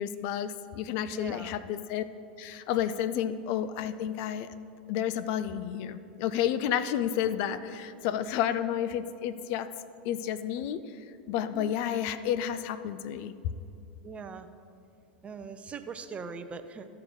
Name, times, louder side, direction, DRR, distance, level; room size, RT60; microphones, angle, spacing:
voice 1, 0.0-2.0 2.4-4.5 4.9-9.7 10.0-10.8 11.3-13.3, left 10 dB, 55° left, 13 dB, 0.4 m, -31 dB
voice 2, 1.1-1.5 3.1-3.2 8.4-8.5 11.5-11.7 14.0-14.5 15.2-16.9, right 5 dB, 25° right, 9 dB, 0.6 m, -41 dB
13.5 x 4.7 x 5.1 m, 2.5 s
hypercardioid pair, 95°, 5 cm